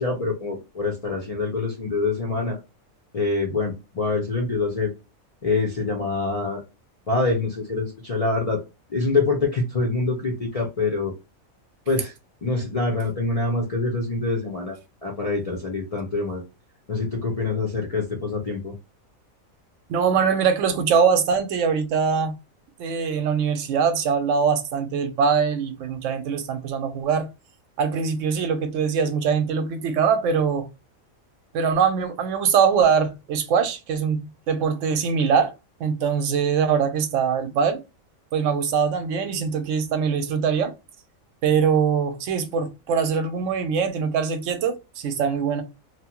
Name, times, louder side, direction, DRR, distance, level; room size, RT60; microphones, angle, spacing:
voice 1, 0.0-2.6 3.1-4.9 5.4-6.6 7.1-8.6 8.9-11.1 11.9-12.1 12.4-16.4 16.9-18.7, left 3 dB, 60° left, 0.3 m, -25 dB
voice 2, 19.9-22.3 22.8-27.3 27.8-30.7 31.5-35.5 35.8-37.8 38.3-40.7 41.4-45.6, right 6 dB, 70° right, 0.9 m, -22 dB
2.9 x 2.1 x 2.8 m
omnidirectional pair, 1.4 m